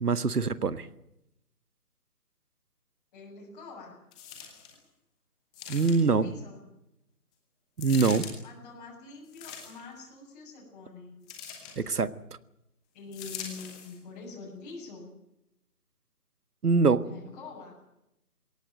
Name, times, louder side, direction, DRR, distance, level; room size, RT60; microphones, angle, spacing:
voice 1, 0.0-0.9 5.7-6.3 7.8-8.3 11.8-12.1 16.6-17.0, right 4 dB, 80° right, 15 dB, 1.7 m, -24 dB
voice 2, 3.1-4.0 6.0-6.6 8.4-11.2 12.9-15.1 17.0-17.8, left 4 dB, 25° left, -3 dB, 7.5 m, -45 dB
sound 1, 4.1-4.8 5.5-6.2 7.8-8.3 9.3-10.0 11.3-11.8 13.1-14.0 14.7-14.8, left 7 dB, 5° left, 0.9 m, -42 dB
22.0 x 18.5 x 9.2 m, 0.85 s
figure-of-eight pair, 160°, 46 cm